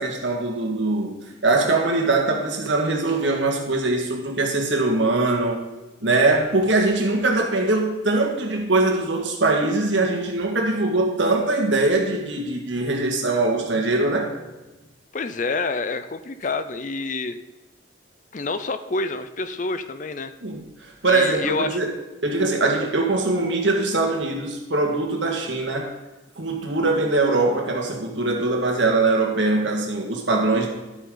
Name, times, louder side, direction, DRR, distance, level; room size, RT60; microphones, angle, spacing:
voice 1, 0.0-5.6 6.0-14.4 20.4-20.6 21.0-21.9 22.2-25.9 26.4-30.7, right 2 dB, 75° right, 1 dB, 1.9 m, -22 dB
voice 2, 15.1-17.4 18.3-20.3 21.1-21.8, left 3 dB, 40° left, 11 dB, 0.5 m, -27 dB
12.0 x 8.2 x 4.0 m, 1.1 s
head